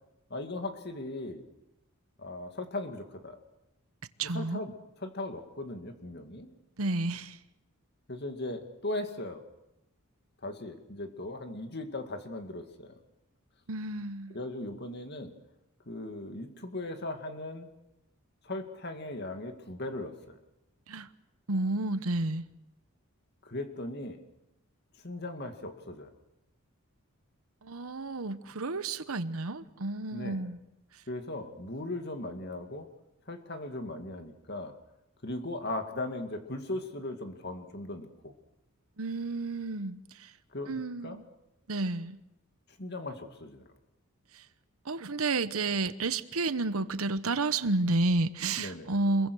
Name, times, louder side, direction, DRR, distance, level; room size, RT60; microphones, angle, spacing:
voice 1, 0.3-1.4 2.2-3.4 4.3-4.7 5.0-6.5 8.1-9.4 10.4-12.9 14.3-15.3 15.9-17.7 18.4-20.4 23.4-24.2 25.0-26.1 30.1-30.4 31.1-32.9 33.3-34.7 35.2-38.3 40.5-41.2 42.8-43.6 48.6-48.9, left 2 dB, 50° left, 6 dB, 2.2 m, -38 dB
voice 2, 4.2-4.6 6.8-7.4 13.7-14.4 20.9-21.1 21.5-22.4 27.6-30.6 39.0-40.3 40.7-41.2 41.7-42.2 44.3-44.4 44.8-49.3, right 2 dB, 85° right, 13 dB, 1.1 m, -31 dB
27.0 x 22.5 x 6.3 m, 0.88 s
head